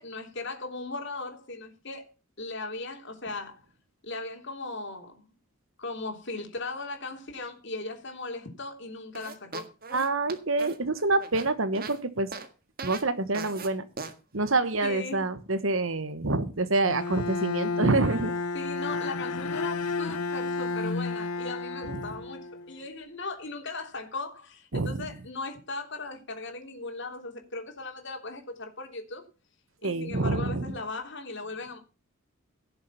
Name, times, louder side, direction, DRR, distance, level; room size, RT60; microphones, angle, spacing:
voice 1, 0.0-2.1 2.4-3.6 4.0-5.2 5.8-9.7 14.8-15.2 18.5-29.2 29.8-31.8, left 3 dB, 55° left, 3.3 m, -38 dB
sound 1, 9.1-12.0 12.3-12.5 12.8-13.0 13.3-13.7 14.0-14.1, right 4 dB, 45° right, 1.7 m, -39 dB
voice 2, 9.9-12.3 12.8-13.9 14.3-18.3 21.9-22.1 24.7-25.0 29.8-30.7, right 2 dB, 65° right, 1.3 m, -27 dB
Bowed string instrument, 16.8-22.8, left 3 dB, 90° left, 0.8 m, -32 dB
17.0 x 7.0 x 5.7 m
head